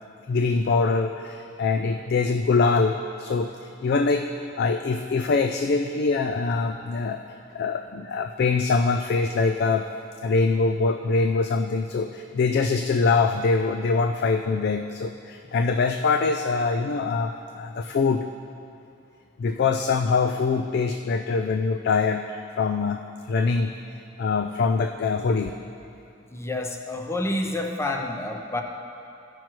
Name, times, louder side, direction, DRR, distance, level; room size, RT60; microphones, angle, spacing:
voice 1, 0.3-4.3 4.6-7.2 7.5-9.9 10.2-18.2 19.4-23.7 24.2-25.5, left 4 dB, 55° left, 6 dB, 0.4 m, -24 dB
voice 2, 26.3-28.6, left 1 dB, 15° left, 3 dB, 0.6 m, -28 dB
15.0 x 6.1 x 4.5 m, 2.6 s
head